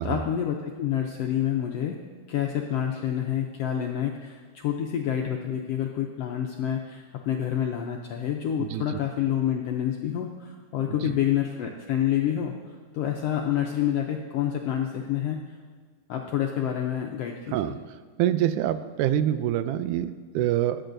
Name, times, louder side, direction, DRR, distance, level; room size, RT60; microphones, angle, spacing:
voice 1, 0.0-2.0 2.3-15.4 16.1-17.5, left 10 dB, 80° left, 1 dB, 1.4 m, -28 dB
voice 2, 8.6-9.0 10.8-11.0 17.5-17.7 18.2-20.8, right 11 dB, 90° right, 12 dB, 2.1 m, -26 dB
21.5 x 8.7 x 2.6 m, 1.5 s
omnidirectional pair, 3.6 m